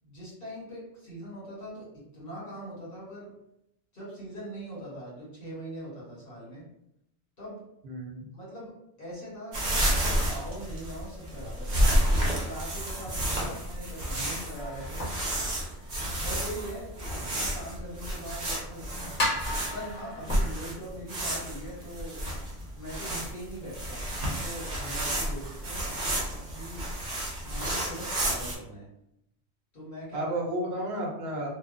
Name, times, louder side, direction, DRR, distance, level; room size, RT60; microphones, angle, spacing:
voice 1, 0.0-3.3 3.9-6.7 7.4-7.6 8.3-8.7 9.0-11.8 12.4-15.1 16.2-19.2 19.7-22.3 22.8-25.9 26.3-26.9 27.4-28.9 29.7-30.6, right 1 dB, 60° left, -7 dB, 1.6 m, -41 dB
voice 2, 7.8-8.3 13.4-13.6 17.2-17.3 30.1-31.5, right 1 dB, 75° right, -1 dB, 0.9 m, -33 dB
sound 1, 9.5-28.5, right 1 dB, 50° right, 0.8 m, -30 dB
sound 2, 14.5-16.2 16.6-16.7 17.2-17.3 18.3-18.4 19.1-20.8, left 1 dB, 40° left, 1.1 m, -34 dB
2.8 x 2.1 x 2.5 m, 0.79 s
omnidirectional pair, 1.1 m